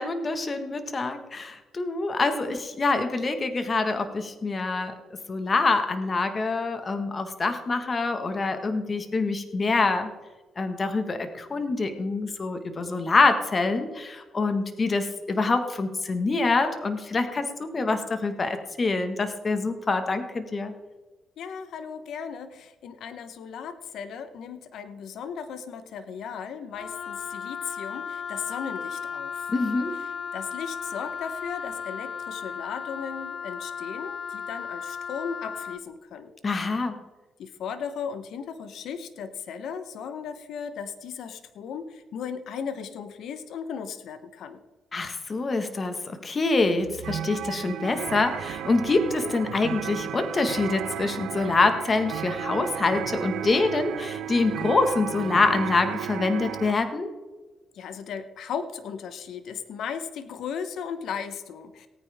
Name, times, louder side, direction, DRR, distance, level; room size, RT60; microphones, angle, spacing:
voice 1, 0.0-4.9 5.3-10.1 10.6-20.7 29.5-29.9 36.4-37.0 44.9-57.1, left 3 dB, 35° left, 8 dB, 1.6 m, -25 dB
voice 2, 21.4-29.5 30.3-36.3 37.4-44.6 57.7-61.9, left 7 dB, 75° left, 10 dB, 1.0 m, -36 dB
Wind instrument woodwind instrument, 26.7-35.8, left 7 dB, 55° left, 0.6 m, -35 dB
sound 1, 46.8-56.7, right 11 dB, 80° right, 0.5 m, -34 dB
18.0 x 9.3 x 3.6 m, 1.2 s
cardioid pair, 90°, 0 cm